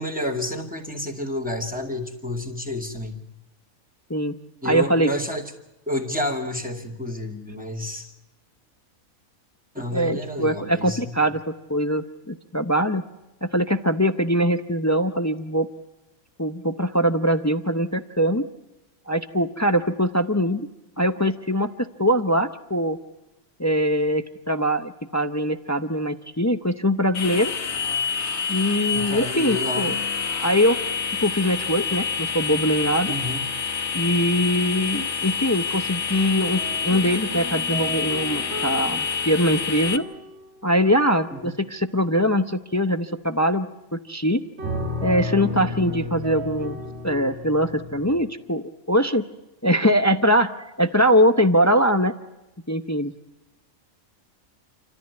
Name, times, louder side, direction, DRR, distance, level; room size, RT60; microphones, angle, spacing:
voice 1, 0.0-3.2 4.6-5.4 5.9-8.1 9.7-11.1 28.9-29.9 33.1-33.4 41.3-41.5, left 1 dB, 5° right, 1 dB, 2.1 m, -30 dB
voice 2, 4.6-5.1 9.9-13.0 13.4-15.7 16.4-18.5 19.1-20.7 21.0-21.7 22.0-23.0 23.6-27.5 28.5-29.9 30.4-30.8 31.2-33.2 33.9-40.0 40.6-44.4 45.0-46.8 47.0-49.2 49.6-52.1 52.7-53.1, equal, 25° left, 9 dB, 0.4 m, -22 dB
sound 1, 27.1-40.0, left 6 dB, 50° left, 1.3 m, -27 dB
sound 2, 36.1-40.6 41.2-41.6 44.6-48.1, left 1 dB, 50° right, 2.0 m, -33 dB
28.0 x 13.5 x 9.5 m, 1.0 s
omnidirectional pair, 1.5 m